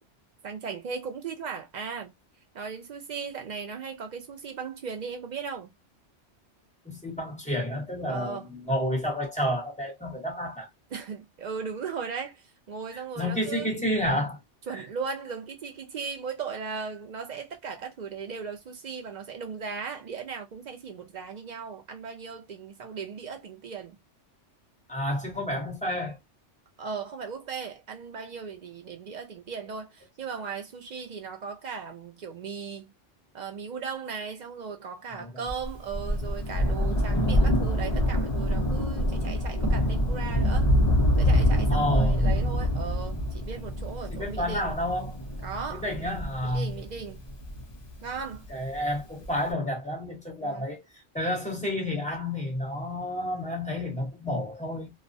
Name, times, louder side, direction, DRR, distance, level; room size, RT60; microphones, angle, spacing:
voice 1, 0.4-2.1 2.5-5.7 8.1-8.5 10.9-13.7 14.7-24.0 26.8-32.9 33.3-40.7 41.2-44.7 45.4-45.9 46.4-47.2 48.0-48.5 50.4-50.7, right 6 dB, 60° right, 0.4 m, -37 dB
voice 2, 6.8-10.7 12.9-14.4 24.9-26.2 35.1-35.5 41.7-42.2 44.1-45.2 45.7-46.8 48.5-50.8 51.1-54.9, left 1 dB, 5° left, 0.8 m, -30 dB
Thunder, 35.5-48.3 49.2-49.3, equal, 35° left, 0.4 m, -25 dB
2.3 x 2.1 x 2.6 m
omnidirectional pair, 1.2 m